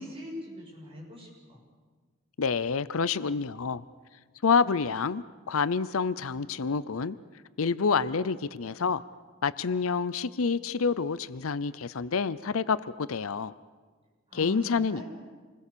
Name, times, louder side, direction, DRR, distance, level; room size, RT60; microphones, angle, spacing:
voice 1, 0.0-1.6 14.3-15.1, left 1 dB, 25° right, -3 dB, 7.4 m, -42 dB
voice 2, 2.4-3.8 4.4-7.2 7.6-9.0 9.4-13.5 14.3-15.0, left 5 dB, 75° left, 16 dB, 0.6 m, -28 dB
28.0 x 21.0 x 6.9 m, 1.4 s
head